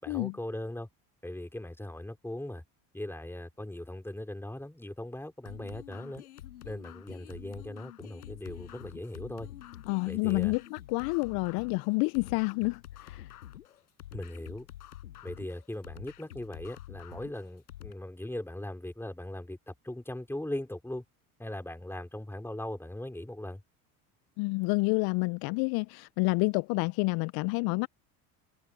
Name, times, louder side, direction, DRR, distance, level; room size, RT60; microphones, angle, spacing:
voice 1, 0.0-0.9 1.2-2.6 2.9-6.2 6.6-9.5 10.1-10.5 14.1-14.7 15.2-21.0 21.4-23.6, left 1 dB, 5° left, 4.2 m, -39 dB
sound 1, 5.4-17.9, left 12 dB, 90° left, 5.2 m, -48 dB
voice 2, 9.9-13.3 24.4-27.9, left 28 dB, 55° left, 0.5 m, -29 dB
hypercardioid pair, 75°, 43 cm